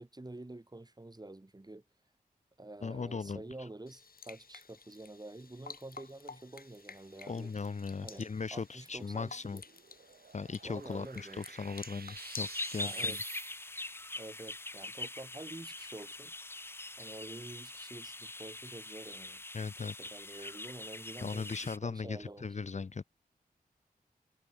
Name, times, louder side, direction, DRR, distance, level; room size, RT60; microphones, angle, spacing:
voice 1, 0.0-1.8 2.6-7.5 8.0-9.6 10.6-11.4 12.8-13.2 14.2-16.3 17.0-19.4 19.8-22.9, right 2 dB, 25° right, 5.1 m, -48 dB
voice 2, 2.8-3.7 7.3-9.6 10.3-13.2 19.5-19.9 20.3-20.5 21.2-23.0, left 4 dB, 45° left, 0.8 m, -38 dB
sound 1, 3.9-12.6, left 4 dB, 65° left, 6.0 m, -52 dB
sound 2, 6.5-14.0, right 5 dB, 70° right, 7.6 m, -52 dB
sound 3, 12.2-21.8, left 2 dB, 15° left, 0.4 m, -42 dB
cardioid pair, 55°, 16 cm